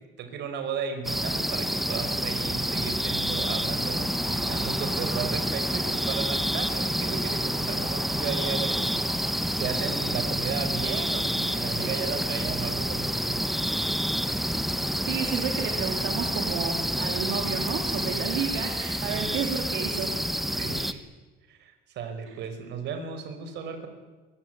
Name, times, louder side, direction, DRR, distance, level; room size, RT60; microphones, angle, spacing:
voice 1, 0.0-9.0 9.5-13.4 19.1-19.3 20.5-21.0 21.5-23.9, right 6 dB, 60° right, 7 dB, 5.4 m, -35 dB
sound 1, 1.0-20.9, equal, ahead, 1.1 m, -28 dB
voice 2, 15.1-20.1 22.3-22.4, right 7 dB, 75° right, 2 dB, 3.8 m, -32 dB
23.0 x 22.5 x 9.5 m, 1.2 s
cardioid pair, 150°, 20 cm